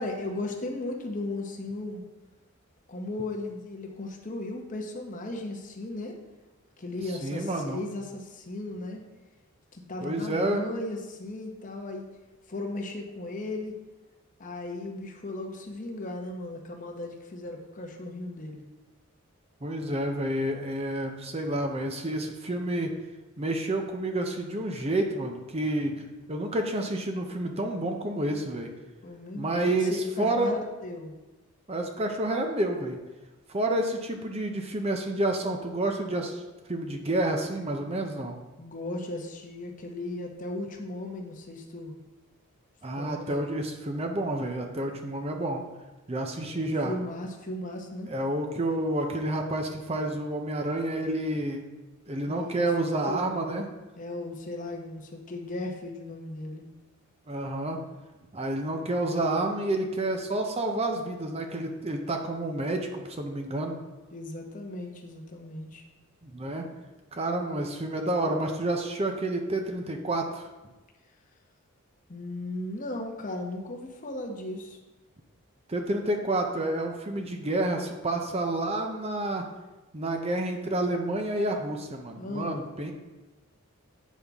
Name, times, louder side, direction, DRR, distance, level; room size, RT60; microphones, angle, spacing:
voice 1, 0.0-2.0 2.9-6.2 6.8-9.0 9.7-12.1 12.5-13.7 14.4-18.6 29.0-31.1 38.6-42.0 43.0-43.3 46.8-48.1 52.3-52.7 53.1-53.2 54.0-56.6 64.1-65.8 72.1-74.8 82.2-82.6, left 2 dB, 35° left, 2 dB, 0.8 m, -36 dB
voice 2, 7.2-7.8 10.0-10.6 19.6-22.9 23.4-28.7 29.3-30.5 31.7-33.0 33.5-36.4 36.7-38.4 42.8-45.6 46.1-46.9 48.1-51.6 52.1-53.6 57.3-57.8 58.3-63.8 66.2-66.6 67.1-70.5 75.7-79.5 79.9-82.9, right 1 dB, 25° right, 3 dB, 0.6 m, -29 dB
8.2 x 5.5 x 3.5 m, 1.1 s
head